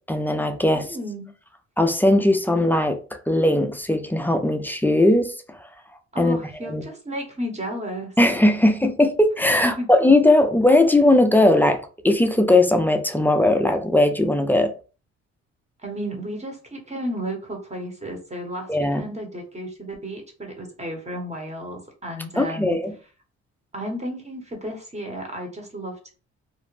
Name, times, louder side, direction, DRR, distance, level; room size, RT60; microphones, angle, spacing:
voice 1, 0.1-0.9 1.8-3.0 3.3-5.6 6.2-6.8 8.2-11.8 12.0-14.7 18.7-19.1 22.4-22.9, left 1 dB, 5° left, 0.3 m, -19 dB
voice 2, 0.7-1.3 6.1-8.1 9.6-9.9 15.8-22.8 23.7-26.1, equal, 20° right, 0.9 m, -33 dB
2.5 x 2.0 x 3.1 m
cardioid pair, 90°, 30 cm